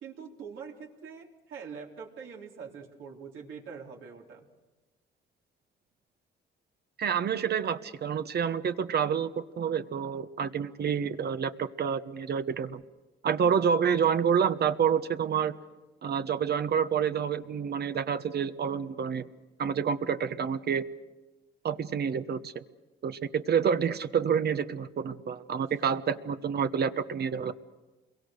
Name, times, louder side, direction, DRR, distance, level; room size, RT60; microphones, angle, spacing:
voice 1, 0.0-4.5 13.4-13.7 25.6-25.7, right 6 dB, 80° right, -1 dB, 3.8 m, -44 dB
voice 2, 7.0-12.8 13.2-15.6 16.0-19.3 19.6-20.9 21.6-22.6 23.0-27.5, right 7 dB, 55° right, 11 dB, 1.1 m, -28 dB
28.5 x 22.5 x 6.5 m, 1.2 s
cardioid pair, 90°, 20 cm